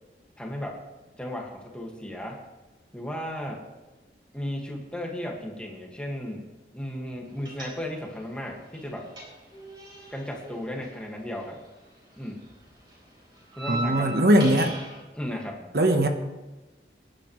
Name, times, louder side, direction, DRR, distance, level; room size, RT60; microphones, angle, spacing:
voice 1, 0.4-0.8 1.2-2.4 2.9-3.6 4.3-6.5 6.7-9.1 10.1-11.6 12.2-12.5 13.5-14.7 15.1-15.7, left 1 dB, 5° left, 0 dB, 1.9 m, -35 dB
sound 1, 7.4-8.2 8.5-11.9 12.1-15.0, right 2 dB, 25° right, 4.2 m, -38 dB
voice 2, 13.7-14.7 15.7-16.1, right 1 dB, 60° right, 6 dB, 1.1 m, -20 dB
24.0 x 10.5 x 3.2 m, 1.1 s
head